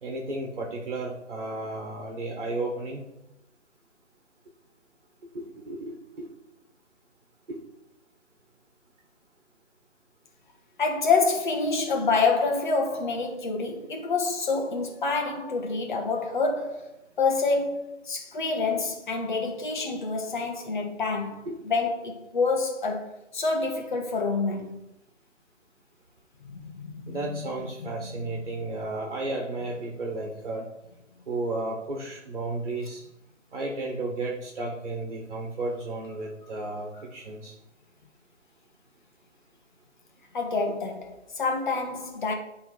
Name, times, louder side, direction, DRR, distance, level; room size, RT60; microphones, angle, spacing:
voice 1, 0.0-3.0 5.3-6.3 7.5-7.6 21.4-21.6 27.1-30.6 31.3-33.0 33.5-37.5, right 2 dB, 50° right, 1.6 m, -33 dB
voice 2, 10.8-16.9 17.2-24.8 26.4-27.5 27.8-28.2 28.5-28.6 40.3-42.3, left 4 dB, 40° left, 1.4 m, -27 dB
10.5 x 3.7 x 4.7 m
figure-of-eight pair, 150°, 37 cm